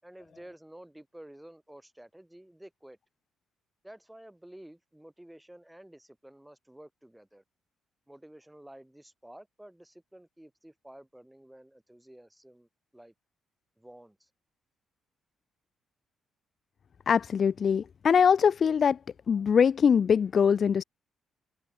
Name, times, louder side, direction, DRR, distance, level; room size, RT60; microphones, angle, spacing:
voice 1, 0.0-3.0 3.8-7.4 8.1-13.1 13.8-14.3, right 1 dB, 5° right, 5.4 m, -51 dB
voice 2, 17.1-19.0 19.3-20.8, left 7 dB, 50° left, 0.4 m, -22 dB
cardioid pair, 90°, 0 cm